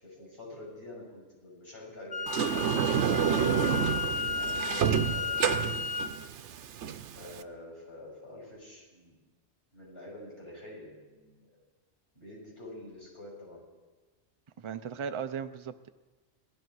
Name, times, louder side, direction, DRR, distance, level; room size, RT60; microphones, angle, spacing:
voice 1, 0.0-3.3 4.1-5.8 7.1-9.2 9.7-11.4 12.1-13.6, left 1 dB, 60° left, -4 dB, 6.9 m, -47 dB
Wind instrument woodwind instrument, 2.1-6.1, left 4 dB, 25° left, 0.6 m, -33 dB
Sliding door, 2.3-7.4, right 8 dB, 80° right, 1.0 m, -29 dB
voice 2, 14.6-15.9, right 7 dB, 40° right, 10 dB, 0.5 m, -37 dB
18.5 x 13.5 x 4.7 m, 1.3 s
omnidirectional pair, 1.2 m